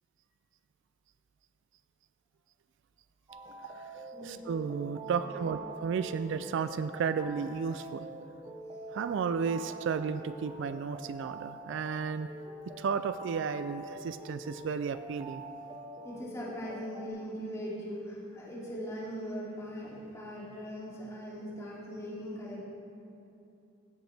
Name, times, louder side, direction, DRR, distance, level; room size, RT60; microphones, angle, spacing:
sound 1, 3.3-17.1, right 2 dB, 25° right, 0.7 m, -45 dB
voice 1, 4.2-8.1 8.9-12.3 12.8-15.4, right 6 dB, 65° right, 12 dB, 0.3 m, -33 dB
voice 2, 16.0-22.6, equal, 15° left, -8 dB, 2.6 m, -40 dB
16.0 x 7.9 x 3.4 m, 2.8 s
head